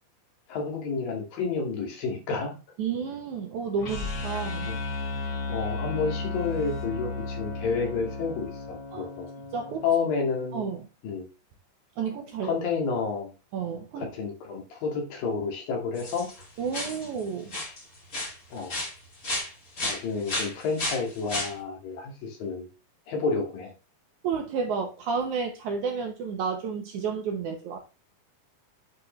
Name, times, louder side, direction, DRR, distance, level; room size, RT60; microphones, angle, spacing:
voice 1, 0.5-2.5 4.7-4.8 5.5-9.3 9.8-10.7 11.0-11.3 12.4-13.3 14.0-16.3 18.5-18.8 19.8-22.7 23.1-23.7, left 5 dB, 70° left, 1 dB, 3.7 m, -30 dB
voice 2, 2.8-4.7 8.9-9.1 9.5-9.8 10.5-10.9 12.0-12.5 13.5-14.1 16.6-17.5 24.2-27.8, right 5 dB, 70° right, 4 dB, 2.0 m, -31 dB
sound 1, 3.8-9.9, left 3 dB, 45° left, 4.9 m, -34 dB
sound 2, 15.9-16.4 16.7-17.2 17.5-17.8 18.1-19.5 19.8-21.5, left 1 dB, 25° left, 2.3 m, -32 dB
9.5 x 5.5 x 3.1 m, 0.29 s
omnidirectional pair, 4.3 m